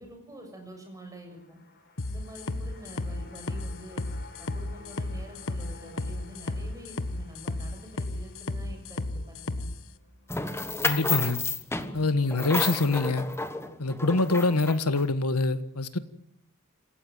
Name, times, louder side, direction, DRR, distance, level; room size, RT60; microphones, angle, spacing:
voice 1, 0.0-1.6 2.0-4.0 4.4-9.6, equal, 15° right, 7.3 m, -46 dB
sound 1, 1.1-11.5 11.8-11.9, left 3 dB, 50° left, 6.0 m, -54 dB
sound 2, 2.0-9.8, left 2 dB, 65° left, 1.3 m, -33 dB
sound 3, 10.3-15.0, left 3 dB, 10° left, 1.4 m, -31 dB
voice 2, 10.8-11.4 11.9-13.3 13.8-16.0, left 3 dB, 90° left, 1.5 m, -25 dB
27.5 x 15.5 x 9.3 m
head